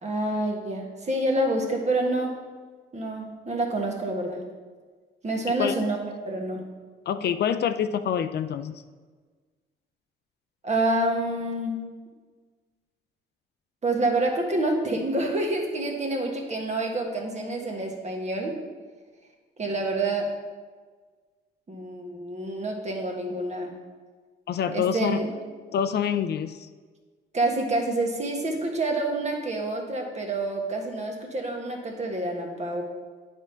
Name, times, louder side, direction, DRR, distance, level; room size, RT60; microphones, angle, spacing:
voice 1, 0.0-2.4 2.9-4.4 5.2-6.0 6.2-6.6 10.6-11.9 13.8-18.6 19.6-20.3 21.7-23.7 24.7-25.3 27.3-32.8, right 2 dB, 35° right, 2 dB, 1.5 m, -27 dB
voice 2, 7.1-8.8 24.5-25.2 25.7-26.7, left 8 dB, 55° left, 11 dB, 0.4 m, -26 dB
9.1 x 3.6 x 5.7 m, 1.5 s
cardioid pair, 90°, 20 cm